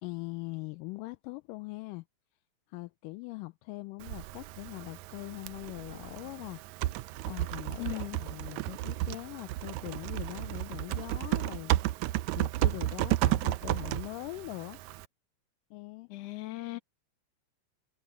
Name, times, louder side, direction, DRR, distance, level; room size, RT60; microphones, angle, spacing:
voice 1, 0.0-2.0 2.7-6.6 7.2-14.8 15.7-16.1, left 21 dB, 85° left, 2.2 m, -42 dB
Typing, 4.0-15.1, right 16 dB, 90° right, 1.6 m, -33 dB
voice 2, 7.8-8.2 16.1-16.8, left 20 dB, 55° left, 2.2 m, -38 dB
omnidirectional pair, 3.9 m